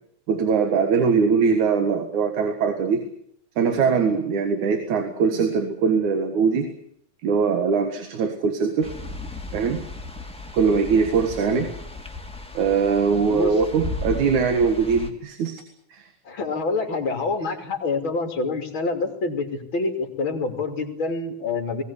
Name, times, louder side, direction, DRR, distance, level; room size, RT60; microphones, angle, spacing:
voice 1, 0.3-3.1 3.6-6.7 7.2-8.9 9.5-9.9 10.5-11.7 12.5-15.6 15.9-16.1, right 5 dB, 85° right, 6 dB, 3.3 m, -21 dB
sound 1, 8.8-15.1, left 3 dB, 5° left, 1.3 m, -35 dB
voice 2, 13.3-13.6 16.3-21.8, left 3 dB, 45° left, 4 dB, 3.5 m, -27 dB
21.0 x 17.5 x 9.8 m, 0.71 s
omnidirectional pair, 3.3 m